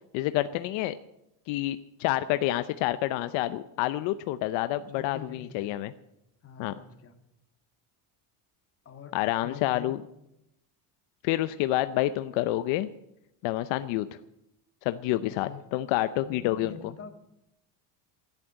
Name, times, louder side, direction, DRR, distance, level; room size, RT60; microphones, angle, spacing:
voice 1, 0.1-0.9 1.5-5.9 6.6-6.7 9.1-10.0 11.2-12.9 13.4-14.1 14.8-16.7, left 15 dB, 80° left, 12 dB, 0.8 m, -28 dB
voice 2, 4.7-5.7 6.4-7.1 8.9-9.1 9.4-9.9 15.3-15.6 16.3-17.1, left 7 dB, 30° left, 5 dB, 2.0 m, -44 dB
12.0 x 11.0 x 8.9 m, 0.84 s
cardioid pair, 145°, 44 cm